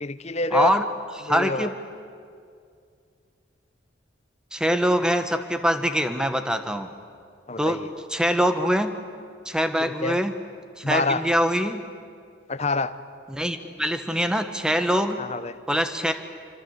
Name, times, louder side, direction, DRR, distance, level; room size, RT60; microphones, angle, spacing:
voice 1, 0.0-0.8 1.3-1.7 7.5-7.9 9.8-10.2 10.8-11.2 12.5-12.9 15.2-15.6, left 3 dB, 35° left, 13 dB, 0.9 m, -27 dB
voice 2, 0.5-0.8 1.2-1.7 4.5-6.9 7.6-7.8 8.1-8.9 9.4-10.4 10.8-11.8 13.3-15.2 15.7-16.1, equal, 5° right, 8 dB, 1.4 m, -23 dB
26.5 x 25.0 x 8.3 m, 2.3 s
head